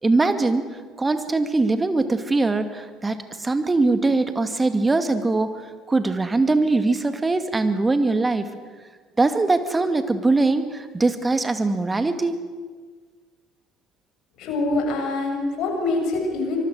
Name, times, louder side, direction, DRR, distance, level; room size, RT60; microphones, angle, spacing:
voice 1, 0.0-0.6 1.0-5.5 5.9-8.5 9.2-12.4, right 3 dB, 20° right, 9 dB, 2.4 m, -21 dB
voice 2, 14.4-16.6, left 2 dB, 55° left, 2 dB, 7.0 m, -24 dB
25.0 x 23.0 x 6.6 m, 1.5 s
figure-of-eight pair, 60°, 0 cm